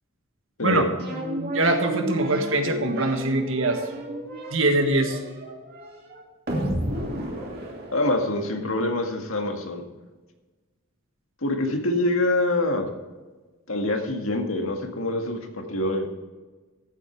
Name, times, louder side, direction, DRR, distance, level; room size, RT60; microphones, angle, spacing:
voice 1, 0.6-0.9 7.2-7.4 7.9-9.8 11.4-12.9 13.7-16.1, left 2 dB, 85° left, 3 dB, 1.9 m, -25 dB
sound 1, 1.0-8.5, equal, 50° right, 2.4 m, -32 dB
voice 2, 1.5-3.8 4.5-5.2, right 2 dB, 75° right, 6 dB, 1.5 m, -23 dB
14.5 x 8.2 x 4.6 m, 1.3 s
head